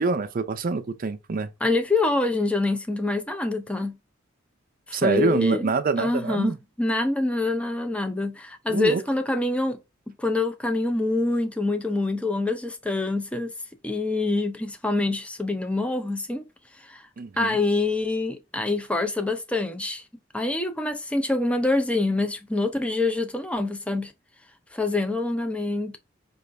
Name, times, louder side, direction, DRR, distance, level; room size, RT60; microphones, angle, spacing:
voice 1, 0.0-1.5 4.9-6.6 8.7-9.0 17.2-17.6, right 4 dB, 45° right, 0.5 m, -25 dB
voice 2, 1.6-4.0 4.9-5.7 6.0-9.8 10.1-13.5 13.8-16.4 16.8-17.0 17.4-20.0 20.3-24.1 24.7-26.0, left 2 dB, 5° left, 0.5 m, -25 dB
5.0 x 2.4 x 3.3 m
head